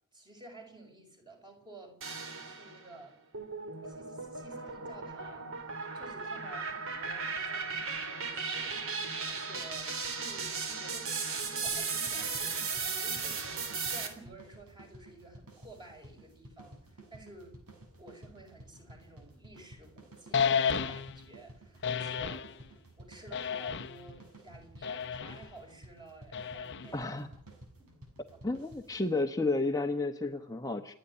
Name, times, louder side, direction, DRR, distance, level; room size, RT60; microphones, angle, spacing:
voice 1, 0.1-3.2 3.8-17.6 18.0-27.1 27.8-27.9, right 2 dB, 20° right, 3 dB, 5.7 m, -53 dB
sound 1, 2.0-2.9 3.3-14.1, right 5 dB, 65° right, 3.4 m, -36 dB
sound 2, 11.7-29.1, right 1 dB, 85° right, 6.5 m, -54 dB
sound 3, 20.3-21.2 21.8-22.5 23.3-24.1 24.8-25.4 26.3-27.0, left 6 dB, 55° left, 0.8 m, -32 dB
voice 2, 26.9-27.3 28.4-30.9, left 2 dB, 15° left, 4 dB, 1.0 m, -31 dB
29.5 x 10.0 x 9.9 m, 0.72 s
head